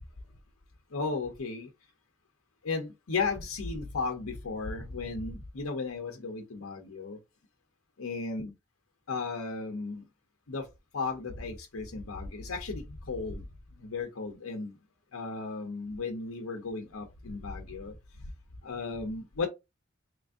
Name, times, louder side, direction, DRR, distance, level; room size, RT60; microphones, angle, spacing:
voice 1, 0.9-1.7 2.6-7.2 8.0-8.5 9.1-10.0 10.5-10.7 10.9-13.5 13.8-14.8 15.1-17.9 18.6-19.5, left 4 dB, 85° left, 0.7 m, -35 dB
3.2 x 2.5 x 3.5 m
head